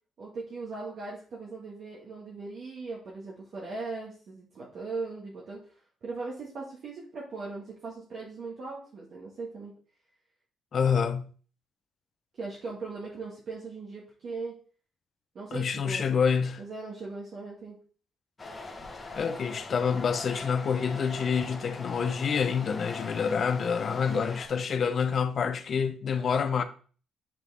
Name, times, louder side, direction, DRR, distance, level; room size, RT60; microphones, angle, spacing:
voice 1, 0.2-5.6 6.0-9.7 12.4-14.5 15.4-16.0 16.6-17.8 24.1-24.3, right 3 dB, 60° right, 1.8 m, -39 dB
voice 2, 10.7-11.3 15.5-16.6 19.1-26.6, left 6 dB, 50° left, 0.7 m, -27 dB
sound 1, 18.4-24.5, left 3 dB, 25° left, 1.3 m, -41 dB
7.5 x 3.6 x 3.6 m
cardioid pair, 90°, 0 cm